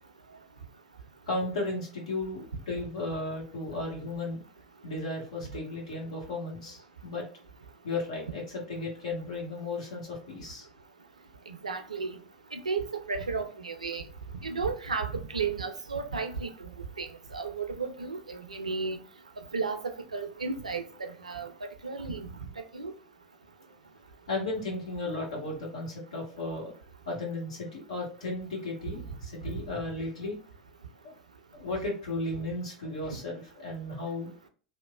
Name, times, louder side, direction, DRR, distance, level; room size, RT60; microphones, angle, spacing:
voice 1, 1.3-4.4 4.8-7.2 7.8-10.7 24.3-26.7 27.1-30.3 31.0-31.1 31.5-34.3, left 2 dB, 70° left, 1.0 m, -35 dB
voice 2, 11.5-12.1 12.5-14.0 14.4-16.7 17.0-17.1 17.3-19.0 19.5-21.5 21.8-22.3 22.7-22.9 29.4-29.5, right 4 dB, 85° right, 0.3 m, -33 dB
3.0 x 2.0 x 2.2 m
figure-of-eight pair, 80°, 4 cm